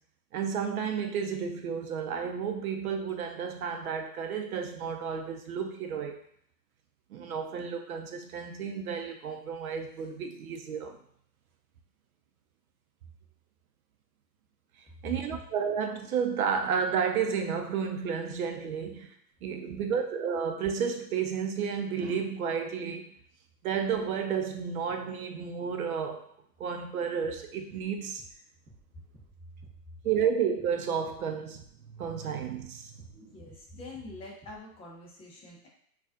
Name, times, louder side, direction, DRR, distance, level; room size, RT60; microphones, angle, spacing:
voice 1, 0.3-6.2 7.1-11.0 15.0-19.1 19.4-23.0 23.6-26.3 26.6-28.2 30.0-31.6 31.9-33.3, right 7 dB, 60° right, 5 dB, 0.7 m, -32 dB
voice 2, 19.6-20.0 28.9-29.0 33.3-35.7, left 1 dB, 10° left, -3 dB, 0.6 m, -45 dB
sound 1, 27.2-27.4 27.7-27.9 28.2-28.3 28.7-28.8 29.1-29.3 29.6-29.8 30.1-30.3 30.6-30.7 31.1-31.2 31.5-31.7 32.0-32.2 32.5-32.7 33.0-33.1 33.5-33.6 33.9-34.1 34.4-34.6, right 2 dB, 15° right, 0.9 m, -54 dB
4.0 x 2.4 x 2.4 m, 0.65 s
hypercardioid pair, 120°, 48 cm